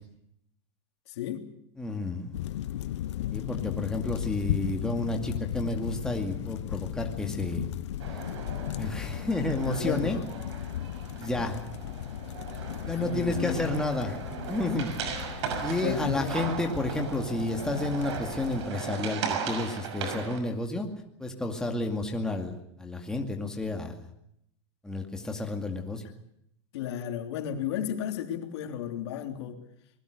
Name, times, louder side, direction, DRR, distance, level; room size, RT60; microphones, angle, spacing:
voice 1, 1.1-1.5 9.6-10.2 12.9-13.8 15.0-15.1 15.8-16.5 26.7-29.6, left 10 dB, 70° left, 5 dB, 3.5 m, -33 dB
voice 2, 1.8-2.3 3.3-7.7 8.8-10.2 11.2-11.6 12.9-14.2 14.4-14.9 15.6-20.9 21.2-24.1 24.8-26.0, left 2 dB, 5° left, 2 dB, 2.3 m, -31 dB
sound 1, 2.3-18.7, left 12 dB, 85° left, 0.8 m, -36 dB
sound 2, 8.0-20.4, right 6 dB, 80° right, 6.0 m, -37 dB
25.0 x 21.0 x 6.7 m, 0.75 s
supercardioid pair, 155°, 15 cm